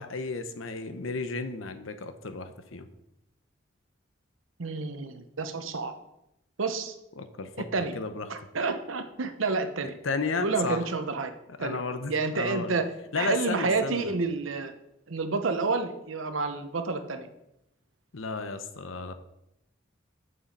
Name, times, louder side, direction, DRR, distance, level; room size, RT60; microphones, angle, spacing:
voice 1, 0.0-2.9 7.2-7.7 7.9-8.3 10.0-10.8 11.6-12.7 13.1-14.1 18.1-19.1, left 4 dB, 85° left, 9 dB, 0.9 m, -33 dB
voice 2, 4.6-5.9 6.6-6.9 7.7-8.0 8.3-10.0 10.4-11.3 11.6-11.8 12.1-12.9 13.2-14.7 15.1-17.3, right 4 dB, 85° right, 8 dB, 0.9 m, -29 dB
7.3 x 6.9 x 5.3 m, 0.84 s
head